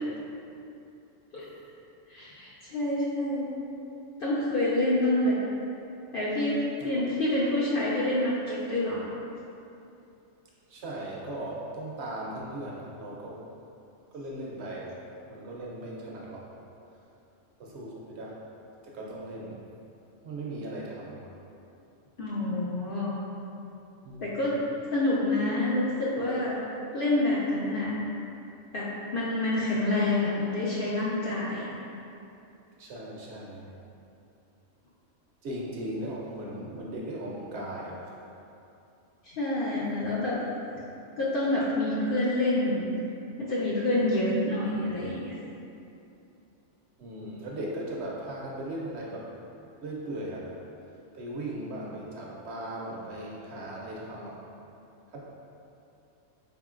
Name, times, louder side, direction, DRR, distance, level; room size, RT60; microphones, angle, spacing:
voice 1, 2.1-3.5 4.2-5.4 6.1-6.6 6.8-9.1 22.2-23.2 24.2-24.6 24.9-26.6 26.9-27.9 28.7-31.7 39.2-40.4 41.2-42.8 43.4-45.4, left 1 dB, 60° left, -7 dB, 0.6 m, -27 dB
voice 2, 10.7-13.4 14.1-14.9 15.3-16.5 17.6-18.4 18.8-19.6 20.2-21.3 24.0-24.4 32.8-33.7 35.4-38.1 47.0-49.3 49.8-50.5 51.1-54.4 55.1-55.2, right 1 dB, 65° right, -4 dB, 0.8 m, -38 dB
3.8 x 3.6 x 2.4 m, 2.8 s
omnidirectional pair, 1.3 m